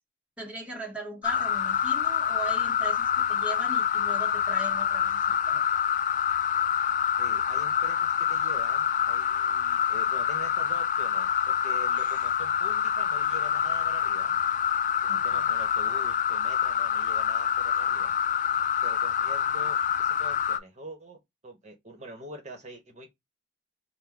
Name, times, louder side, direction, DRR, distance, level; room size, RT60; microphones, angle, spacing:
voice 1, 0.4-5.6 15.1-15.5, right 2 dB, 5° right, 1.1 m, -39 dB
sound 1, 1.2-20.6, left 9 dB, 45° left, 0.4 m, -26 dB
voice 2, 7.2-14.4 15.1-18.1 18.8-23.1, right 1 dB, 40° right, 1.0 m, -45 dB
3.8 x 2.2 x 4.4 m
head